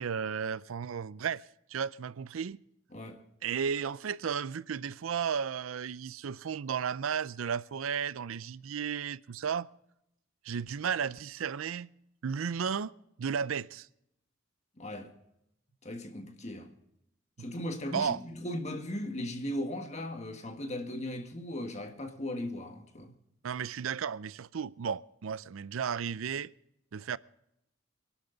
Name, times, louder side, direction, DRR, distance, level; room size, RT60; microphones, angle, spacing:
voice 1, 0.0-1.4 1.7-2.6 3.4-9.7 10.4-11.9 12.2-12.9 13.2-13.9 17.4-17.5 17.9-18.2 23.4-26.5 26.9-27.2, right 7 dB, 90° right, 0.5 m, -34 dB
voice 2, 2.9-3.2 14.8-15.1 15.8-16.7 17.4-23.1, left 1 dB, 35° left, 1.7 m, -37 dB
23.0 x 12.5 x 3.9 m
head